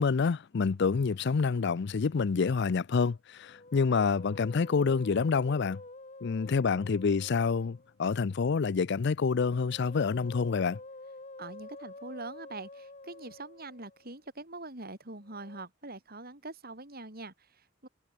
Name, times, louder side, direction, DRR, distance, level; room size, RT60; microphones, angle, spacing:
voice 1, 0.0-5.8 6.2-10.8, left 5 dB, 60° left, 0.5 m, -27 dB
Musical instrument, 3.3-8.0 9.3-14.1 15.2-15.7, left 2 dB, 35° left, 5.7 m, -48 dB
voice 2, 11.4-17.9, right 2 dB, 50° right, 5.6 m, -44 dB
head